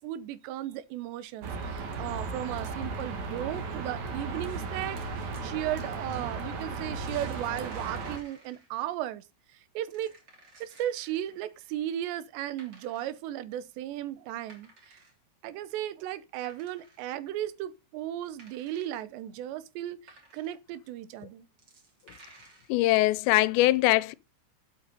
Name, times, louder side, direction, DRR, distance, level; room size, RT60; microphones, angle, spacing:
voice 1, 0.0-5.0 5.4-9.2 9.8-10.1 10.6-14.7 15.4-20.0 20.3-21.5, right 12 dB, 80° right, 3.1 m, -35 dB
sound 1, 1.4-8.2, right 4 dB, 50° right, 2.7 m, -35 dB
sound 2, 4.9-5.7 6.0-9.0 9.6-12.1 12.5-13.2 13.9-14.0 14.2-15.3 15.6-15.7 16.1-17.0 17.3-17.5 18.2-19.0 19.4-20.6 21.1-21.2 21.5-22.7, right 2 dB, 30° right, 2.9 m, -56 dB
voice 2, 22.7-24.2, left 18 dB, 85° left, 2.9 m, -22 dB
8.6 x 8.1 x 5.1 m
omnidirectional pair, 5.0 m